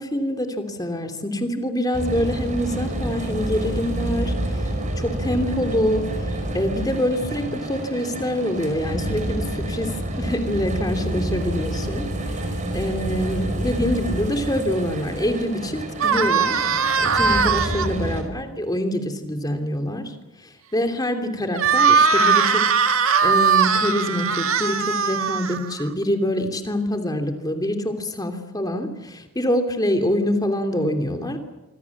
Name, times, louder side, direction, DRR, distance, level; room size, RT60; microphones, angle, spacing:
voice 1, 0.0-4.3 5.0-6.0 6.5-9.9 10.2-12.0 12.3-12.4 12.7-16.7 17.0-20.1 20.7-22.6 23.2-31.4, equal, 20° left, 6 dB, 3.0 m, -25 dB
sound 1, 1.9-18.2, right 1 dB, 35° right, 5.3 m, -28 dB
sound 2, 4.7-12.4, equal, 35° left, 1.8 m, -45 dB
sound 3, 16.0-17.9 21.5-25.9, right 6 dB, 80° right, 1.7 m, -19 dB
26.0 x 24.5 x 7.3 m, 1.0 s
head